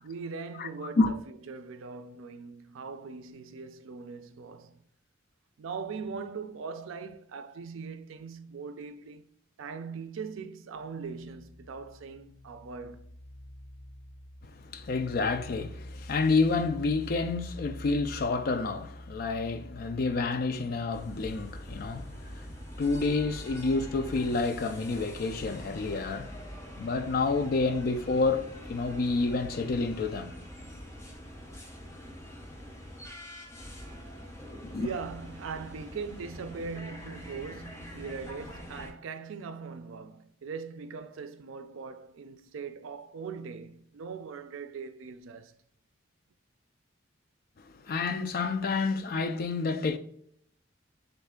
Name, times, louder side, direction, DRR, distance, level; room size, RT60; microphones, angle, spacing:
voice 1, 0.0-1.2 1.5-4.8 5.6-9.2 9.6-13.2 34.8-45.5, right 5 dB, 85° right, 0.4 m, -40 dB
sound 1, 10.7-26.2, left 1 dB, 90° left, 0.9 m, -48 dB
voice 2, 14.5-22.5 22.8-26.4 26.8-30.3 34.6-34.9 47.7-50.0, left 3 dB, 50° left, 0.3 m, -29 dB
sound 2, 20.9-38.9, equal, 15° left, 0.7 m, -44 dB
3.5 x 3.2 x 3.6 m
head